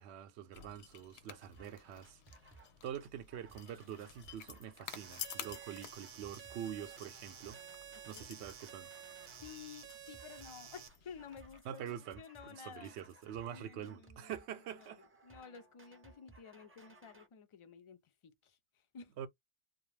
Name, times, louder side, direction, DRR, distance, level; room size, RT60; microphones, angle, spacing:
voice 1, 0.0-2.2 2.8-7.6 8.1-8.9 11.6-15.0 19.2-19.3, right 9 dB, 85° right, 0.8 m, -45 dB
sound 1, 0.5-11.6, left 9 dB, 85° left, 0.8 m, -52 dB
sound 2, 1.5-1.7 2.0-2.7 3.0-9.6 9.9-10.6 10.9-17.3, right 3 dB, 20° right, 0.4 m, -61 dB
sound 3, 4.9-10.9, right 8 dB, 55° right, 0.7 m, -52 dB
voice 2, 9.4-13.0 13.5-14.4 14.7-19.3, left 7 dB, 45° left, 0.4 m, -53 dB
2.4 x 2.2 x 3.2 m
omnidirectional pair, 1.1 m